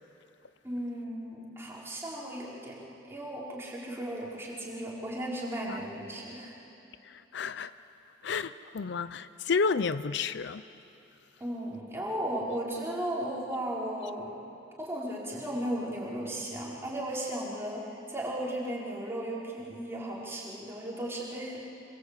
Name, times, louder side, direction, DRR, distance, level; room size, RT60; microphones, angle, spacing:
voice 1, 0.6-6.5 11.4-14.3 14.8-21.6, right 1 dB, 15° right, 4.9 m, -35 dB
voice 2, 7.0-7.7 8.2-10.6, left 5 dB, 65° left, 0.6 m, -31 dB
26.5 x 24.0 x 8.4 m
head